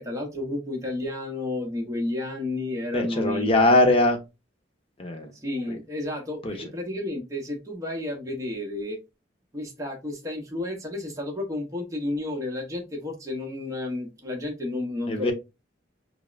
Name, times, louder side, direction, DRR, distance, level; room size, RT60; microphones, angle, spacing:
voice 1, 0.0-3.7 5.4-9.0 9.5-15.3, left 2 dB, 15° right, 1 dB, 0.9 m, -31 dB
voice 2, 2.9-4.2 5.0-5.3 5.7-5.8 6.4-6.6 15.1-15.3, left 2 dB, 30° left, 4 dB, 0.8 m, -21 dB
5.3 x 2.1 x 2.4 m, 0.25 s
head